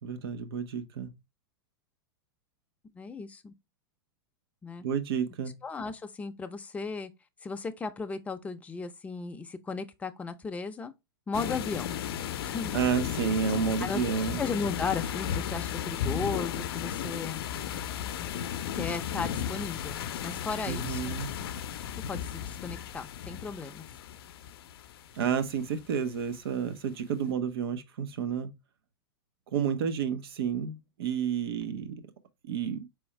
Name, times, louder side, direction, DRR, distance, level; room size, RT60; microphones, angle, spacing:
voice 1, 0.0-1.1 4.8-5.5 12.7-14.4 20.7-21.3 25.1-28.5 29.5-32.0 32.5-32.9, right 7 dB, 75° right, 0.9 m, -30 dB
voice 2, 2.9-3.5 4.6-4.8 5.6-7.1 7.4-10.9 11.3-12.0 12.5-12.8 13.8-14.0 14.4-17.4 18.7-21.1 22.1-23.9, left 4 dB, 10° left, 0.5 m, -36 dB
sound 1, 11.3-25.9, left 9 dB, 70° left, 0.6 m, -35 dB
4.4 x 3.5 x 3.2 m
hypercardioid pair, 120°, 13 cm